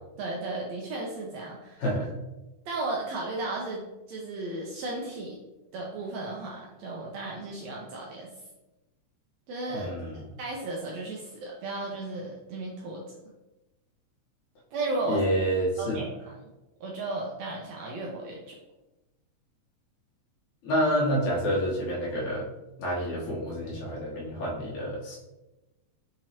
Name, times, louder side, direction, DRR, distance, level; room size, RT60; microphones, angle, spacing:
voice 1, 0.2-1.8 2.7-3.8 4.1-5.4 5.7-8.3 9.5-9.9 10.4-13.0 14.7-15.2 15.8-16.1 16.8-18.5, right 2 dB, 75° right, -2 dB, 1.6 m, -34 dB
voice 2, 1.8-2.1 9.7-10.2 15.0-16.0 20.6-22.4 22.8-25.2, equal, 75° left, -5 dB, 2.7 m, -28 dB
6.0 x 3.0 x 2.8 m, 1.0 s
omnidirectional pair, 3.6 m